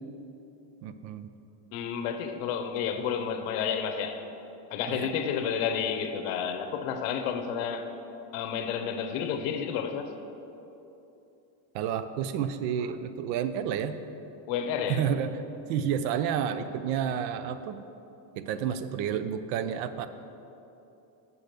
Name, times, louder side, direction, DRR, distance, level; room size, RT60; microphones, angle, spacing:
voice 1, 0.8-1.3 4.9-5.1 11.7-14.0 14.9-15.3 15.7-17.8 18.4-20.1, right 8 dB, 80° right, 11 dB, 0.7 m, -30 dB
voice 2, 1.7-4.2 4.7-7.9 8.3-10.1 14.5-15.1, left 7 dB, 65° left, 7 dB, 0.9 m, -30 dB
7.0 x 6.2 x 6.6 m, 2.9 s
cardioid pair, 150°, 49 cm